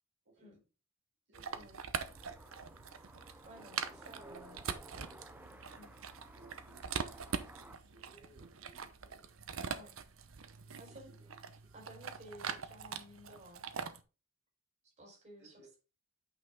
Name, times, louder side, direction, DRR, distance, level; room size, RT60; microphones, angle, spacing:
voice 1, 1.3-2.2 3.5-5.6 6.3-9.3 10.6-11.7 15.4-15.7, right 2 dB, 60° right, -3 dB, 2.8 m, -61 dB
sound 1, 1.3-14.0, right 6 dB, 90° right, 0.9 m, -43 dB
sound 2, 2.0-7.8, right 1 dB, 10° right, 0.6 m, -56 dB
voice 2, 3.5-4.6 5.7-5.9 9.7-9.9 10.8-11.1 11.7-13.9 14.8-15.8, right 1 dB, 35° right, -1 dB, 4.4 m, -55 dB
9.1 x 5.5 x 3.7 m, 0.32 s
head